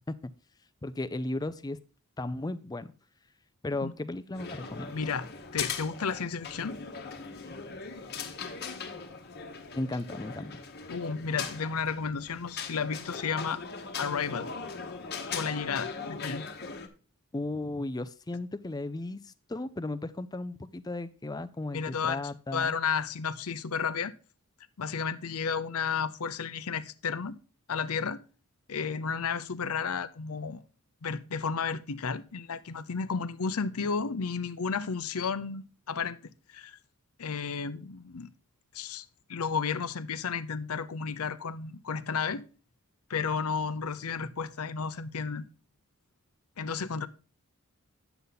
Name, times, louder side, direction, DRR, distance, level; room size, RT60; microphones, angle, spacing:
voice 1, 0.8-1.8 2.2-2.9 3.6-4.9 9.7-10.6 17.3-22.7, left 2 dB, 20° left, 0.4 m, -35 dB
sound 1, 4.3-16.9, left 5 dB, 45° left, 1.1 m, -39 dB
voice 2, 4.9-6.8 10.9-13.6 14.0-14.5 15.3-16.5 21.7-22.2 22.5-24.1 24.8-27.4 27.7-28.2 28.7-30.6 31.0-36.2 36.5-36.8 37.2-38.3 38.7-39.0 39.3-42.4 43.1-45.5 46.6-47.1, left 5 dB, 80° left, 0.7 m, -32 dB
9.3 x 6.9 x 4.0 m
head